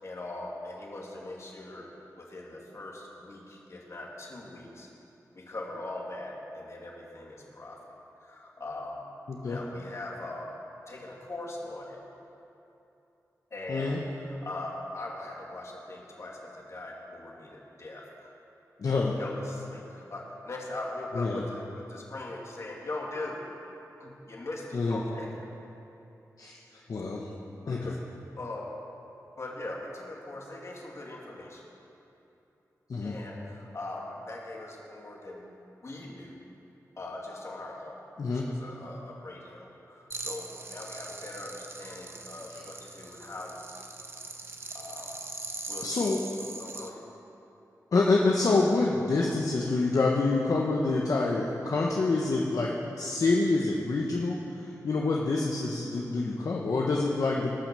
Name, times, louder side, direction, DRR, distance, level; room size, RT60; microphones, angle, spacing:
voice 1, 0.0-1.9 2.2-4.9 5.3-9.0 9.5-10.6 10.9-12.0 13.5-18.3 19.2-23.4 24.0-25.3 27.6-28.7 29.4-31.6 33.0-35.4 35.8-36.4 37.0-38.0 38.3-43.9 44.7-45.2 45.7-46.1 46.6-47.0, left 2 dB, 50° left, -2 dB, 2.2 m, -41 dB
voice 2, 9.3-9.6 13.7-14.0 18.8-19.1 21.1-21.4 24.7-25.0 26.4-27.2 27.7-28.0 32.9-33.1 38.2-38.4 45.8-46.2 47.9-57.6, left 3 dB, 65° left, -2 dB, 1.0 m, -27 dB
sound 1, 40.1-46.9, right 3 dB, 40° right, 0.9 m, -41 dB
18.0 x 6.1 x 6.8 m, 2.9 s
wide cardioid pair, 110°, 6 cm